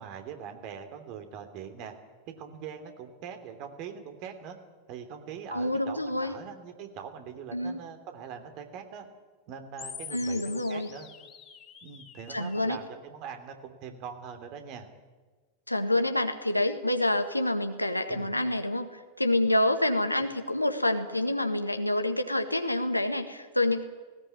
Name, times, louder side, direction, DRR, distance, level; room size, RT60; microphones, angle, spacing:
voice 1, 0.0-1.9 2.3-4.6 4.9-9.1 9.5-11.1 11.8-14.9 18.1-18.3, right 7 dB, 45° right, 6 dB, 3.0 m, -42 dB
voice 2, 5.5-6.4 7.5-7.8 10.1-10.9 12.3-12.8 15.7-23.8, left 1 dB, 85° left, 7 dB, 1.7 m, -27 dB
sound 1, 9.8-12.8, left 7 dB, 25° left, 2.9 m, -45 dB
18.5 x 18.5 x 9.8 m, 1.3 s
figure-of-eight pair, 90°, 0 cm